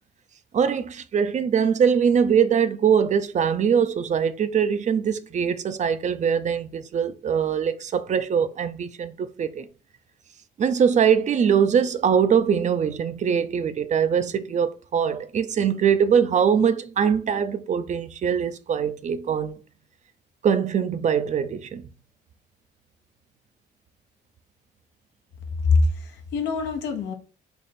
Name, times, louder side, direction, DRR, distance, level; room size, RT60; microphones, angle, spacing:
voice 1, 0.5-9.6 10.6-19.5 20.4-21.8, right 7 dB, 40° right, 0.4 m, -22 dB
voice 2, 25.6-27.1, left 3 dB, 90° left, 0.9 m, -23 dB
3.4 x 2.4 x 4.1 m
cardioid pair, 90°, 18 cm